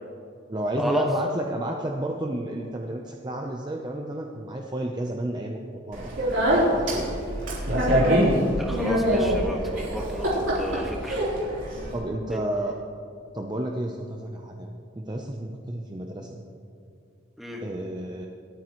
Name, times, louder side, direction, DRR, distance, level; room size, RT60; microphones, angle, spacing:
voice 1, 0.5-5.6 5.9-6.2 6.5-7.1 11.9-12.7 13.3-16.4 17.6-18.3, right 1 dB, 20° right, 1 dB, 0.7 m, -31 dB
Speech, 5.9-12.0, equal, 70° right, 3.9 m, -24 dB
voice 2, 8.5-11.3 12.3-12.4 17.4-17.6, equal, ahead, -1 dB, 1.6 m, -32 dB
27.0 x 9.3 x 3.1 m, 2.6 s
head